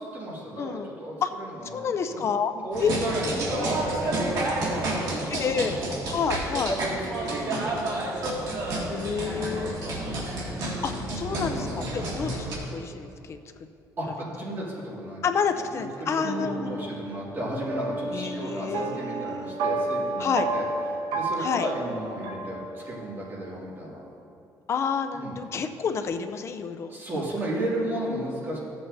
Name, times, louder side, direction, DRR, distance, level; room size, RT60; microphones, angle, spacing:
voice 1, 0.0-2.2 2.5-6.0 6.5-8.5 8.7-8.9 9.4-10.2 11.4-12.1 14.0-15.3 15.6-20.7 21.1-24.0 25.1-25.3 26.9-28.6, right 1 dB, 35° right, -6 dB, 2.4 m, -34 dB
voice 2, 0.6-0.9 1.2-1.3 1.7-2.5 2.8-2.9 5.3-5.8 6.1-6.7 8.9-9.8 10.8-13.4 15.2-16.9 18.1-19.5 20.2-20.5 21.4-21.7 24.7-26.9, left 6 dB, 40° left, 8 dB, 0.5 m, -29 dB
sound 1, 2.7-12.6, right 2 dB, 65° right, 2.1 m, -30 dB
sound 2, 16.2-23.2, right 3 dB, 85° right, 1.0 m, -32 dB
15.5 x 7.8 x 2.7 m, 2.7 s
cardioid pair, 145°, 7 cm